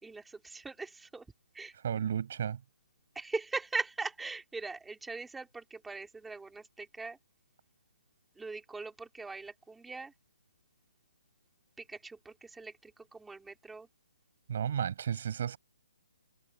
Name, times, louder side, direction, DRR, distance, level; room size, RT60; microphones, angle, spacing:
voice 1, 0.0-1.3 1.5-1.8 3.1-7.2 8.4-10.1 11.8-13.9, right 3 dB, 5° right, 3.8 m, -40 dB
voice 2, 1.8-2.6 14.5-15.6, right 8 dB, 45° right, 6.0 m, -33 dB
hypercardioid pair, 165°, 0 cm